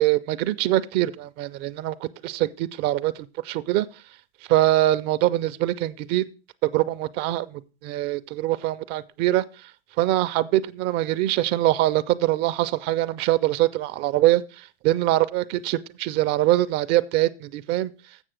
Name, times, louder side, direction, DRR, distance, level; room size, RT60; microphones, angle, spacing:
voice 1, 0.0-3.1 3.4-3.9 4.5-6.3 6.6-9.4 10.0-14.4 14.8-17.9, right 15 dB, 35° right, 0.4 m, -23 dB
7.9 x 6.2 x 6.1 m
hypercardioid pair, 120°, 31 cm